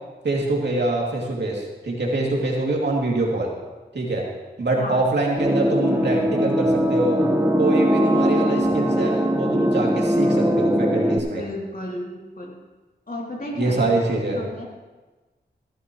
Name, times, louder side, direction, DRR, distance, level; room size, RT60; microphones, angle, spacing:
voice 1, 0.2-3.5 3.9-4.2 4.6-7.3 7.6-11.4 13.6-14.4, right 2 dB, 75° right, -2 dB, 2.7 m, -24 dB
sound 1, 5.4-11.2, equal, 15° right, 1.3 m, -20 dB
voice 2, 11.3-12.6 13.1-13.9 14.3-14.7, left 1 dB, 55° left, -3 dB, 3.0 m, -33 dB
16.5 x 12.5 x 3.1 m, 1.2 s
wide cardioid pair, 70°, 18 cm